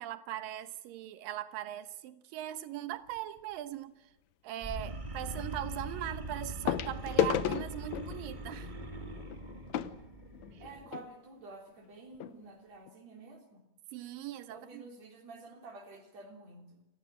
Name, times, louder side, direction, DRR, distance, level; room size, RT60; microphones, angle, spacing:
voice 1, 0.0-4.1 4.4-8.7 10.5-10.7 13.9-14.9, right 13 dB, 85° right, 12 dB, 2.8 m, -40 dB
sound 1, 3.1-3.4 5.1-5.2 6.7-11.1 11.9-12.0 12.2-12.3 12.9-13.0, left 10 dB, 65° left, 2.0 m, -34 dB
sound 2, 4.6-10.9, right 2 dB, 25° right, 1.1 m, -42 dB
voice 2, 10.6-13.7 14.5-16.9, right 3 dB, 50° right, 3 dB, 4.4 m, -50 dB
28.5 x 15.5 x 9.0 m, 0.96 s
omnidirectional pair, 3.9 m